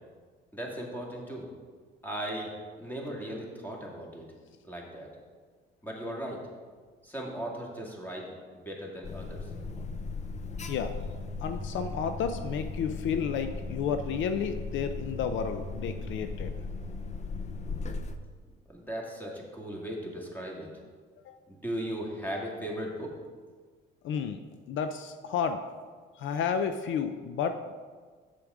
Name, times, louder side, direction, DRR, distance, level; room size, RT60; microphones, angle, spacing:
voice 1, 0.5-1.5 2.0-2.5 2.8-4.2 4.7-5.1 5.8-6.4 7.0-9.5 18.7-20.7 21.5-23.1, right 1 dB, 10° left, -2 dB, 2.0 m, -37 dB
Alarm, 9.0-18.2, left 3 dB, 35° left, 0.6 m, -37 dB
voice 2, 11.4-16.5 21.3-21.4 24.0-24.4 24.7-25.6 26.2-27.7, left 7 dB, 75° left, 9 dB, 0.5 m, -31 dB
6.9 x 6.8 x 4.9 m, 1.5 s
cardioid pair, 90°, 20 cm